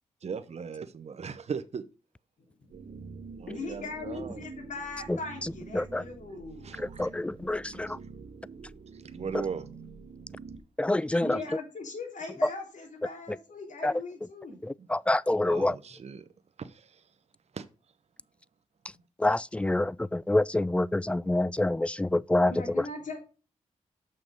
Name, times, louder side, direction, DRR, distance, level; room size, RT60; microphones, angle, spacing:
voice 1, 0.2-1.8 3.3-4.5 6.6-7.1 7.9-8.0 8.9-9.8 11.1-11.2 14.8-14.9 15.4-16.3 16.6-17.0 17.5-17.6, right 6 dB, 55° right, 0.7 m, -38 dB
sound 1, 2.7-10.6, right 5 dB, 80° right, 1.1 m, -46 dB
voice 2, 3.5-6.7 11.2-14.6 22.5-23.2, left 3 dB, 75° left, 3.1 m, -39 dB
voice 3, 7.0-8.0 10.8-11.4 13.8-13.9 14.9-15.7 19.2-22.5, left 1 dB, 10° left, 0.3 m, -26 dB
6.5 x 5.9 x 5.2 m
cardioid pair, 55°, 13 cm